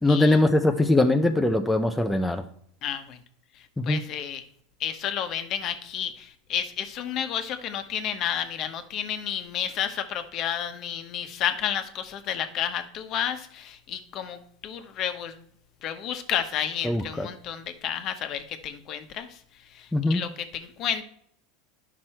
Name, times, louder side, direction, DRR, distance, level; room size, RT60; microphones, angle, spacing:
voice 1, 0.0-2.4 3.8-4.0 16.8-17.3 19.9-20.2, left 2 dB, 5° left, 4 dB, 0.5 m, -22 dB
voice 2, 2.8-3.2 3.5-4.4 4.8-15.4 15.8-21.0, left 9 dB, 40° left, 8 dB, 1.1 m, -31 dB
10.5 x 6.0 x 4.4 m, 0.66 s
supercardioid pair, 145°, 0 cm